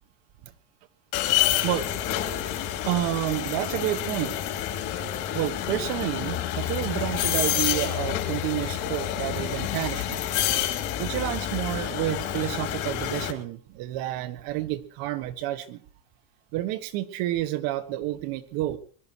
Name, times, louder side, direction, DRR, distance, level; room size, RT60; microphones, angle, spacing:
sound 1, 1.1-13.3, left 11 dB, 40° left, 2.9 m, -28 dB
voice 1, 2.8-4.3 5.3-10.2 11.0-15.8 16.5-18.8, right 15 dB, 50° right, 11 dB, 1.6 m, -29 dB
23.0 x 12.0 x 4.7 m, 0.44 s
cardioid pair, 170°, 45 cm